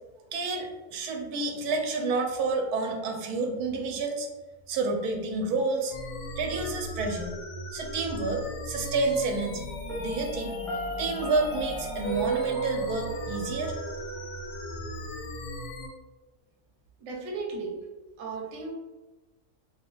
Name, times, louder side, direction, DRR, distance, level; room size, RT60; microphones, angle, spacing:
voice 1, 0.3-4.3 4.7-6.0 6.4-7.3 7.7-9.7 10.0-13.7, right 3 dB, 90° right, 3 dB, 1.1 m, -29 dB
sound 1, 5.9-15.9, left 1 dB, 85° left, 1.1 m, -38 dB
Piano, 9.9-14.8, right 4 dB, ahead, 0.5 m, -34 dB
voice 2, 17.0-17.8 18.2-18.7, right 3 dB, 65° right, 0 dB, 0.9 m, -35 dB
2.8 x 2.2 x 3.8 m, 1.2 s
omnidirectional pair, 1.6 m